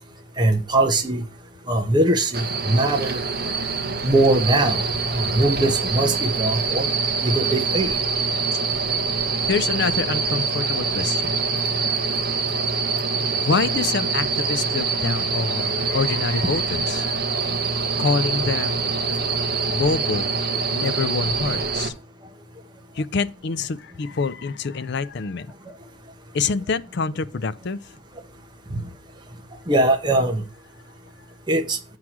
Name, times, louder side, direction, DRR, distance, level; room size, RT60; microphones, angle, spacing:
voice 1, 0.4-1.2 1.7-3.2 4.0-4.8 5.1-6.9 7.2-8.0 28.7-28.8 29.7-30.4 31.5-31.8, right 2 dB, 20° right, 1.1 m, -21 dB
sound 1, 2.3-21.9, right 4 dB, 45° right, 1.1 m, -25 dB
voice 2, 9.4-11.3 13.5-17.2 18.0-19.0 19.7-20.3 20.7-21.9 22.9-25.5 26.3-27.9, left 4 dB, 55° left, 0.5 m, -26 dB
7.6 x 4.8 x 6.0 m
head